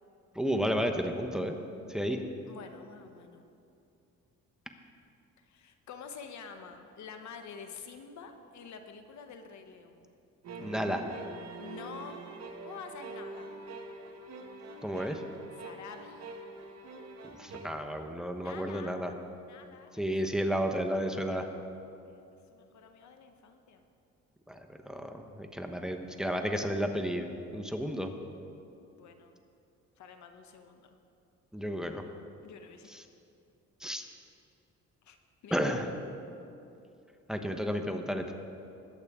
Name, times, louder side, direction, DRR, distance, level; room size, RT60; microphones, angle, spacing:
voice 1, 0.3-1.6 1.9-2.2 10.6-11.1 14.8-15.2 17.4-19.1 19.9-21.5 24.5-28.1 31.5-32.0 32.9-33.0 33.8-34.1 35.5-35.9 37.3-38.3, equal, ahead, 5 dB, 0.9 m, -32 dB
voice 2, 2.5-3.4 5.4-10.1 11.6-12.2 12.6-13.5 15.5-16.3 18.4-19.0 19.5-20.1 20.9-21.1 22.1-22.2 22.5-23.8 29.0-29.4 30.0-31.0 32.4-33.0 35.0-35.2 35.4-35.7, left 6 dB, 70° left, 7 dB, 1.0 m, -48 dB
sound 1, 10.4-17.7, right 3 dB, 60° right, 1.3 m, -45 dB
20.5 x 8.3 x 3.6 m, 2.7 s
cardioid pair, 90°, 30 cm